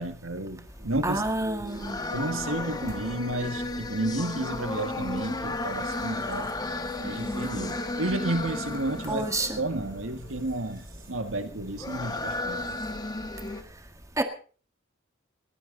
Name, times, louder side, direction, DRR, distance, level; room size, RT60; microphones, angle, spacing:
voice 1, 0.0-1.3 1.6-1.7 2.1-6.5 7.0-12.8, right 2 dB, 75° right, 1.8 m, -32 dB
sound 1, 0.7-13.6, left 2 dB, 20° left, 1.4 m, -34 dB
sound 2, 0.8-13.1, equal, 45° right, 5.9 m, -47 dB
voice 2, 1.0-2.0 9.1-9.6 14.2-14.3, right 2 dB, 15° right, 1.8 m, -28 dB
20.0 x 15.0 x 3.9 m
head